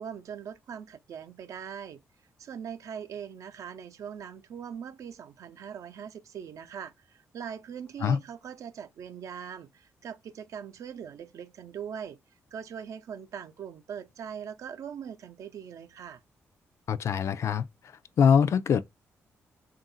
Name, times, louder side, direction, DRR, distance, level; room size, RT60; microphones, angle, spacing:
voice 1, 0.0-2.0 2.4-12.2 12.5-16.2, right 8 dB, 70° right, 0.6 m, -41 dB
voice 2, 16.9-17.6 18.2-18.8, left 7 dB, 60° left, 0.4 m, -23 dB
3.7 x 2.5 x 4.0 m
cardioid pair, 75°, 5 cm